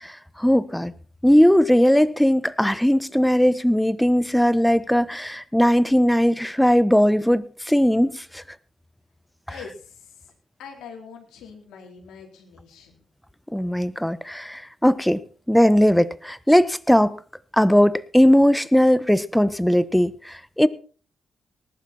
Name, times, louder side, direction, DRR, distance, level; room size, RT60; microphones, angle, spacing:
voice 1, 0.4-0.9 1.2-8.4 13.5-15.2 15.5-17.2 17.5-20.7, equal, 5° left, 1.3 m, -18 dB
voice 2, 9.5-10.3 10.6-13.0, left 6 dB, 75° left, 4.0 m, -43 dB
19.0 x 11.5 x 4.4 m
hypercardioid pair, 40°, 0 cm